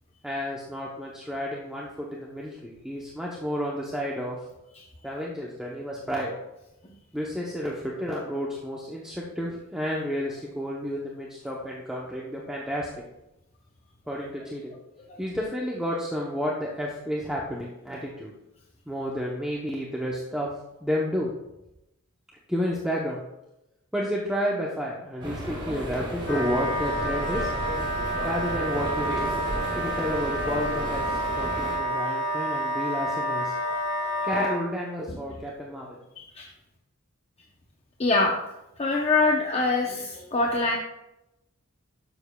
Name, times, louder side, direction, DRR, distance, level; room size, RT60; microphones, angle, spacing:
voice 1, 0.2-4.4 5.0-6.4 7.1-13.0 14.1-14.7 15.2-18.3 18.9-20.5 20.8-21.3 22.5-23.2 23.9-27.5 28.2-33.5 34.2-36.0, equal, 5° right, -4 dB, 0.7 m, -31 dB
sound 1, 25.2-31.8, right 1 dB, 25° right, 2.9 m, -34 dB
Wind instrument woodwind instrument, 26.2-34.6, equal, 75° left, 2.1 m, -29 dB
voice 2, 36.2-36.5 38.0-38.3 38.8-40.8, left 3 dB, 30° left, -1 dB, 0.7 m, -24 dB
11.5 x 7.0 x 2.3 m, 0.91 s
head